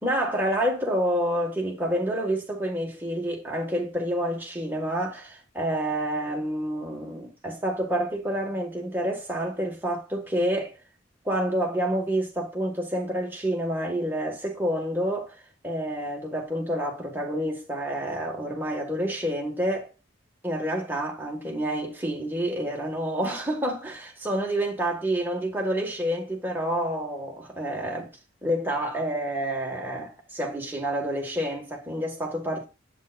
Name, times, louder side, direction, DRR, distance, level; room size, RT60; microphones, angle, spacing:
voice 1, 0.0-10.7 11.3-19.9 20.4-28.1 28.4-32.6, right 1 dB, 10° right, 1.9 m, -28 dB
7.9 x 7.3 x 2.5 m
head